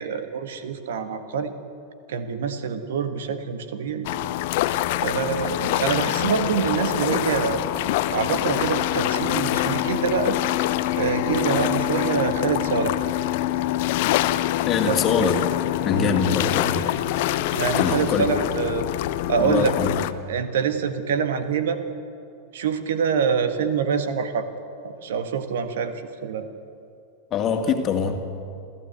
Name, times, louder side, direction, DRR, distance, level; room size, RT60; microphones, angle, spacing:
voice 1, 0.0-1.5 2.1-4.1 5.0-7.6 8.1-10.4 11.0-13.0 14.9-15.3 15.9-16.2 17.5-18.9 19.3-19.7 20.3-21.8 22.5-24.5 24.8-26.5, right 6 dB, 60° right, 9 dB, 1.5 m, -25 dB
sound 1, 4.0-20.1, left 14 dB, 50° left, 0.8 m, -25 dB
voice 2, 14.7-15.4 15.8-16.8 17.8-18.3 19.4-19.9 27.3-28.2, left 6 dB, 30° left, 5 dB, 2.3 m, -23 dB
28.5 x 15.0 x 8.1 m, 2.5 s
figure-of-eight pair, 90°, 0 cm